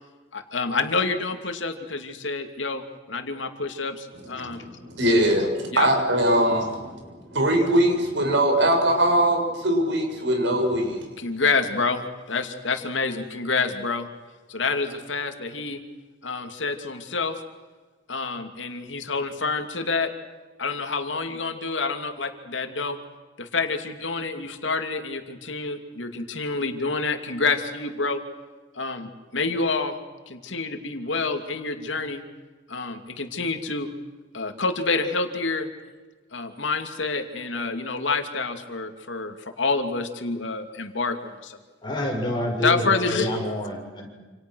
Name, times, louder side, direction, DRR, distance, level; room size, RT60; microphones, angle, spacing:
voice 1, 0.3-2.8 3.1-4.6 5.7-5.9 11.2-12.0 12.3-14.1 14.5-15.8 16.2-17.4 18.1-20.1 20.6-23.0 23.4-28.2 28.8-30.0 30.3-32.2 32.7-33.9 34.3-35.7 36.3-41.6 42.6-43.6, left 4 dB, 80° left, 6 dB, 2.7 m, -28 dB
voice 2, 4.2-7.0 7.3-11.0, right 1 dB, 70° right, 3 dB, 6.7 m, -22 dB
voice 3, 41.8-44.2, left 1 dB, 25° left, 0 dB, 7.0 m, -28 dB
28.5 x 28.0 x 6.4 m, 1.3 s
head